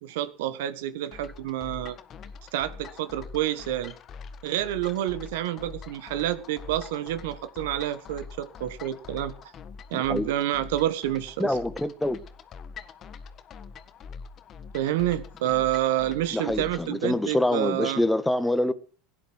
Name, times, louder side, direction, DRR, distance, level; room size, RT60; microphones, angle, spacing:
voice 1, 0.0-2.0 2.5-3.9 4.4-9.3 9.9-11.6 14.7-18.0, right 13 dB, 70° right, 1.5 m, -28 dB
sound 1, 1.1-17.0, left 5 dB, 40° left, 1.6 m, -44 dB
voice 2, 9.9-10.3 11.4-12.2 16.3-18.7, left 1 dB, 5° left, 1.3 m, -26 dB
16.5 x 10.5 x 6.1 m
hypercardioid pair, 90°, 0 cm